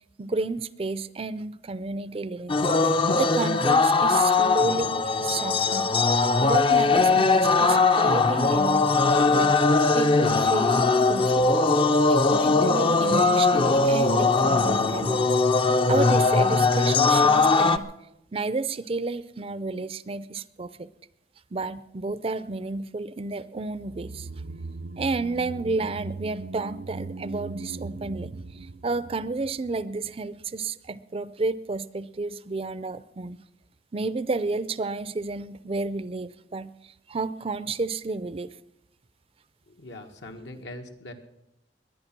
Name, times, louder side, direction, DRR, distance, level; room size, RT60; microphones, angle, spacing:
voice 1, 0.2-2.6 3.1-5.9 6.4-9.6 9.9-11.5 12.1-15.2 15.9-17.9 18.3-20.9 21.5-24.3 25.0-28.3 28.8-33.4 33.9-36.7 37.1-38.5, right 3 dB, 30° right, 16 dB, 0.5 m, -31 dB
sound 1, 2.5-17.8, left 3 dB, 30° left, 0.5 m, -20 dB
sound 2, 23.7-30.2 30.4-30.5, right 3 dB, 70° right, 0.7 m, -39 dB
voice 2, 39.7-41.1, left 1 dB, 80° left, 4 dB, 1.7 m, -41 dB
21.5 x 9.6 x 6.0 m, 0.86 s
head